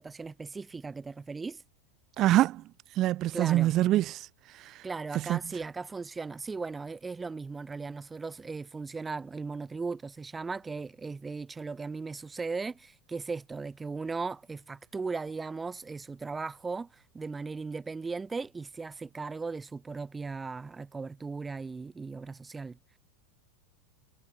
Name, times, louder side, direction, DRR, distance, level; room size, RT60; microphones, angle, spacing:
voice 1, 0.0-1.6 3.3-3.7 4.8-22.8, right 4 dB, 15° right, 6.8 m, -37 dB
voice 2, 2.2-2.6 3.0-4.3 4.5-4.8 5.3-5.4, right 14 dB, 40° right, 0.4 m, -25 dB
supercardioid pair, 125°, 0 cm